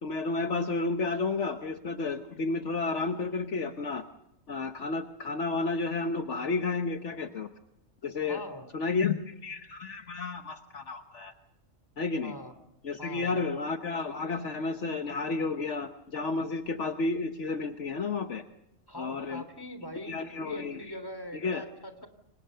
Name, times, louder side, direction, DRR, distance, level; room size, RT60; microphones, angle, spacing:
voice 1, 0.0-4.0 4.5-7.5 8.0-8.4 8.7-11.3 12.0-12.3 12.8-18.4 19.0-19.4 20.1-21.0 21.3-21.6, left 3 dB, 65° left, 7 dB, 1.4 m, -31 dB
voice 2, 8.2-8.7 12.2-12.5 13.0-13.5 18.9-22.1, equal, 15° left, 9 dB, 3.4 m, -42 dB
29.5 x 25.0 x 6.8 m, 0.86 s
omnidirectional pair, 1.3 m